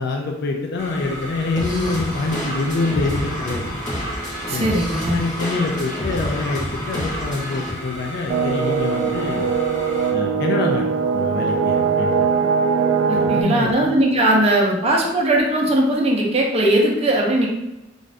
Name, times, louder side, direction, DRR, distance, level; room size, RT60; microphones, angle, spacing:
voice 1, 0.0-3.7 4.5-4.8 5.1-9.5 10.1-10.8 11.1-12.3 13.1-13.9, left 3 dB, 60° left, 1 dB, 0.3 m, -25 dB
sound 1, 0.8-10.1, equal, 75° left, 1.0 m, -34 dB
sound 2, 1.6-7.7, equal, 40° left, 0.8 m, -29 dB
voice 2, 4.5-5.2 13.1-17.5, right 1 dB, 35° right, -1 dB, 0.5 m, -19 dB
sound 3, 8.3-13.4, right 6 dB, 90° right, 0.3 m, -20 dB
2.5 x 2.4 x 3.1 m, 0.95 s
head